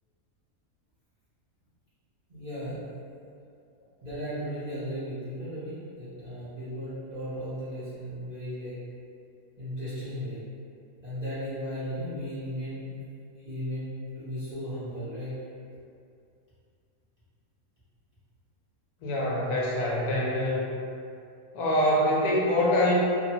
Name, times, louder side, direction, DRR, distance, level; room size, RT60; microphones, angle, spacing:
voice 1, 2.3-2.9 4.0-8.8 9.6-10.4 11.0-12.9 13.4-15.4, equal, 40° right, -14 dB, 0.7 m, -36 dB
voice 2, 19.0-20.7 21.5-22.9, left 1 dB, 90° left, -4 dB, 1.1 m, -25 dB
2.8 x 2.1 x 2.7 m, 2.4 s
omnidirectional pair, 1.6 m